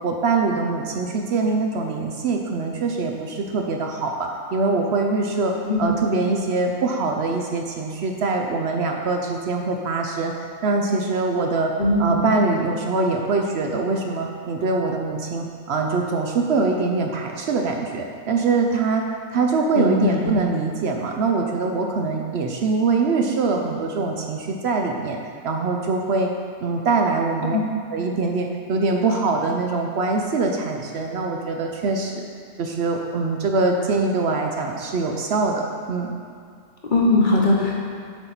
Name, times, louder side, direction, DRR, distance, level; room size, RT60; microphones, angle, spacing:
voice 1, 0.0-11.7 12.0-19.0 19.3-25.2 25.4-26.3 26.6-27.6 27.9-32.3 32.6-36.2, right 3 dB, 65° right, 2 dB, 0.8 m, -23 dB
voice 2, 5.5-5.9 11.8-12.3 19.7-20.3 27.5-27.6 36.8-37.7, left 2 dB, 45° left, -2 dB, 1.0 m, -20 dB
7.9 x 4.0 x 5.8 m, 2.2 s
omnidirectional pair, 1.3 m